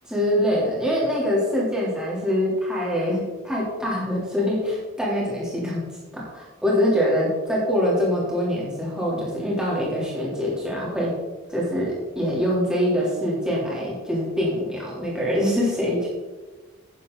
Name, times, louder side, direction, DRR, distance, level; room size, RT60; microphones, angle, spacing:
voice 1, 0.1-5.8 6.1-11.2 11.5-16.1, equal, 5° right, -6 dB, 3.5 m, -24 dB
11.0 x 10.0 x 4.0 m, 1.2 s
head